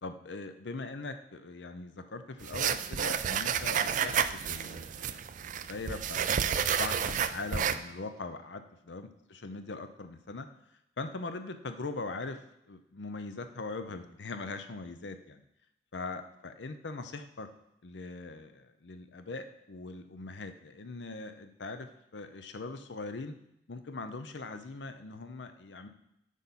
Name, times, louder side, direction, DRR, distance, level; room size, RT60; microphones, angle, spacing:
voice 1, 0.0-5.2 5.7-10.5 11.0-12.4 12.7-15.4 15.9-17.5 17.8-23.3 23.7-25.9, left 3 dB, 80° left, 9 dB, 0.7 m, -41 dB
sound 1, 2.4-7.8, right 8 dB, 45° right, 0.3 m, -30 dB
8.2 x 5.4 x 4.2 m, 0.82 s
head